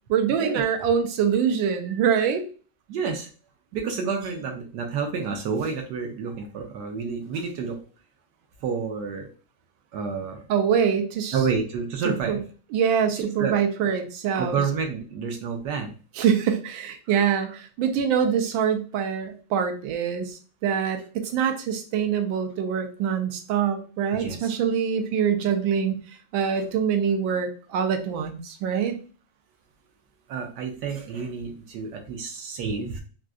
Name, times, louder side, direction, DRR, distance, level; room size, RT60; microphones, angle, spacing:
voice 1, 0.1-2.4 10.5-11.4 12.0-12.4 12.7-14.6 16.1-26.0 26.3-29.0, right 7 dB, 85° right, 6 dB, 1.4 m, -24 dB
voice 2, 2.9-3.3 3.7-7.8 8.6-9.3 9.9-10.4 11.3-12.4 13.1-13.6 14.4-15.9 24.2-24.5 30.3-33.0, right 5 dB, 70° right, 3 dB, 1.1 m, -29 dB
3.7 x 2.5 x 2.3 m, 0.38 s
omnidirectional pair, 2.1 m